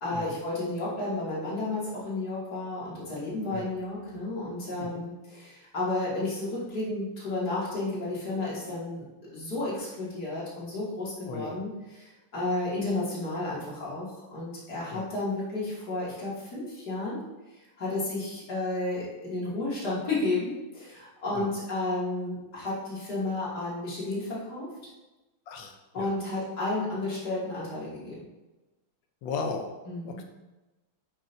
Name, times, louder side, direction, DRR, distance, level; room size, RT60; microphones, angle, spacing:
voice 1, 0.0-9.0 9.3-17.2 17.8-24.7 25.9-28.2 29.9-30.2, left 2 dB, 50° left, -7 dB, 3.2 m, -32 dB
voice 2, 11.3-11.6 14.9-15.1 21.3-21.5 25.5-26.1 29.2-29.7 30.0-30.2, left 4 dB, 70° left, 4 dB, 1.6 m, -36 dB
11.5 x 6.1 x 2.8 m, 1.1 s
omnidirectional pair, 2.2 m